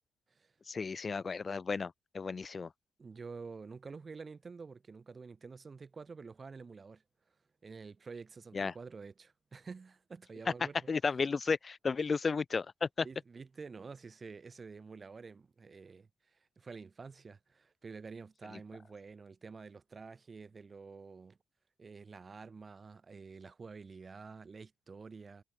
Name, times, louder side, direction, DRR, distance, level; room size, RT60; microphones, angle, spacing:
voice 1, 0.7-2.7 8.5-8.7 10.9-13.1, left 5 dB, 35° left, 0.7 m, -33 dB
voice 2, 3.0-7.0 7.6-10.9 13.0-21.4 21.8-25.4, right 4 dB, 35° right, 1.7 m, -49 dB
cardioid pair, 90°, 0 cm